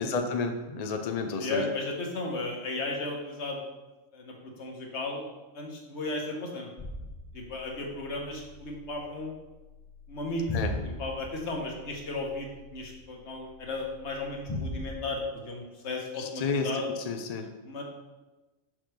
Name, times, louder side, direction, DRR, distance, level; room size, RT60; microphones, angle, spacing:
voice 1, 0.0-1.6 10.5-10.8 16.2-17.5, left 4 dB, 50° left, 5 dB, 0.5 m, -31 dB
voice 2, 1.4-3.6 4.1-5.3 5.5-6.7 7.3-9.3 10.1-10.5 10.8-16.9 17.6-17.8, left 2 dB, 65° left, 0 dB, 1.4 m, -35 dB
sound 1, 6.8-14.9, left 2 dB, 30° left, 0.9 m, -40 dB
6.1 x 5.9 x 3.3 m, 1.1 s
omnidirectional pair, 1.3 m